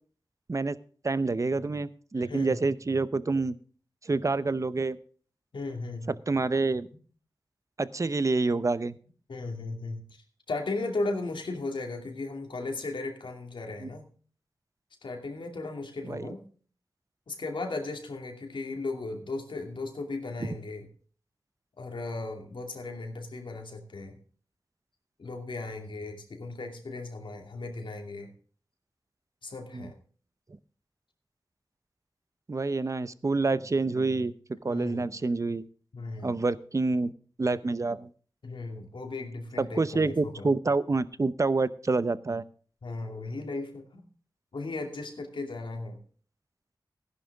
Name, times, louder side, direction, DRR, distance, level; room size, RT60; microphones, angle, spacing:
voice 1, 1.0-3.5 4.0-5.0 6.3-6.9 7.8-9.0 13.8-13.9 16.0-16.3 29.7-29.9 32.5-34.3 34.6-35.6 36.2-37.1 37.4-38.1 39.6-42.4, right 3 dB, 40° right, 16 dB, 0.7 m, -27 dB
voice 2, 2.2-2.6 5.5-6.1 9.3-10.2 10.5-14.1 15.0-16.4 17.3-20.9 21.8-24.2 25.2-28.3 29.4-29.9 34.7-35.1 35.9-36.4 38.4-40.5 42.8-44.0 44.5-46.0, left 3 dB, 85° left, 3 dB, 2.6 m, -36 dB
15.5 x 11.0 x 3.5 m, 0.42 s
wide cardioid pair, 75°, 8 cm